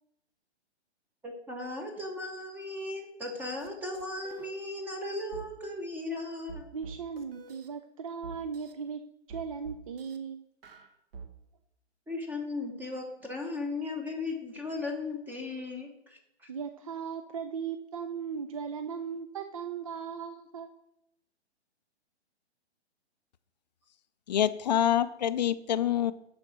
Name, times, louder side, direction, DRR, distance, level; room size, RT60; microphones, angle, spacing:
voice 1, 1.2-6.7 12.1-16.5, left 2 dB, 5° right, 4 dB, 0.7 m, -37 dB
sound 1, 3.6-3.7 3.9-4.5 5.3-5.5 6.5-7.7 8.2-8.7 9.3-10.2 10.6-11.3, right 5 dB, 55° right, 1.1 m, -46 dB
voice 2, 6.7-9.0 9.3-10.4 16.5-20.7, right 6 dB, 30° right, 8 dB, 0.4 m, -37 dB
voice 3, 24.3-26.1, left 10 dB, 40° left, 13 dB, 0.4 m, -26 dB
11.5 x 4.2 x 6.1 m, 0.82 s
hypercardioid pair, 140°, 34 cm